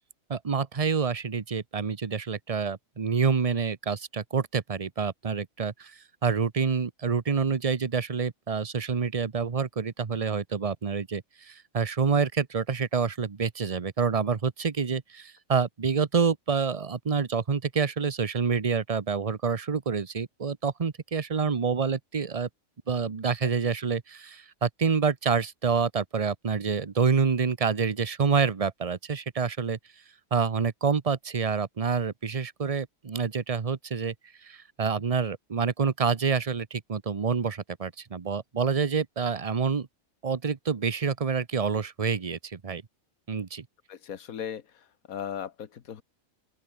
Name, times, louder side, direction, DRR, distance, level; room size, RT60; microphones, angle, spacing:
voice 1, 0.3-22.5 22.9-29.8 30.3-34.1 34.4-39.9 40.2-42.8 43.3-43.7, right 5 dB, 30° right, 0.8 m, -27 dB
voice 2, 43.9-46.0, left 8 dB, 85° left, 1.6 m, -38 dB
open air
omnidirectional pair, 1.4 m